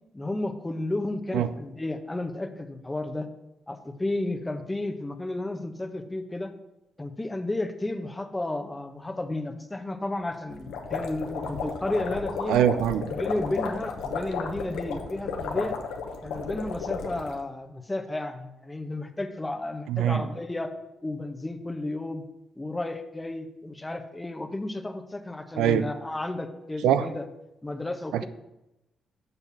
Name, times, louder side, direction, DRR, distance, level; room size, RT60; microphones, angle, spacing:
voice 1, 0.1-3.3 3.7-6.5 7.0-12.7 13.1-15.7 16.2-20.7 21.0-22.2 22.6-27.3 27.6-28.3, left 2 dB, 20° left, 1.1 m, -32 dB
sound 1, 10.5-17.3, left 5 dB, 80° left, 1.0 m, -33 dB
voice 2, 12.5-13.1 19.9-20.2 25.6-25.9 26.8-27.1 28.1-28.3, right 10 dB, 80° right, 0.4 m, -23 dB
6.8 x 6.5 x 5.7 m
supercardioid pair, 60°, 0 cm